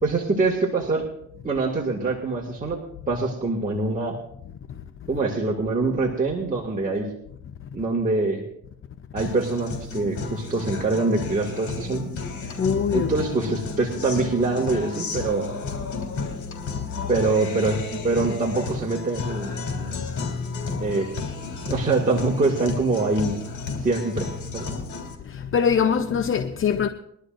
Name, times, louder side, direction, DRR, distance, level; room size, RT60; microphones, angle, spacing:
voice 1, 0.0-1.1 1.4-4.2 5.1-7.1 7.7-8.4 9.1-12.1 12.9-15.5 17.1-19.5 20.8-21.1 21.6-23.3 23.8-24.3 24.5-24.7, right 3 dB, 25° right, 2.3 m, -24 dB
Guitar, 9.2-25.1, left 4 dB, 70° left, 3.4 m, -32 dB
voice 2, 12.6-13.1 25.5-26.9, left 7 dB, 45° left, 0.8 m, -22 dB
22.0 x 12.0 x 2.6 m
cardioid pair, 90°, 30 cm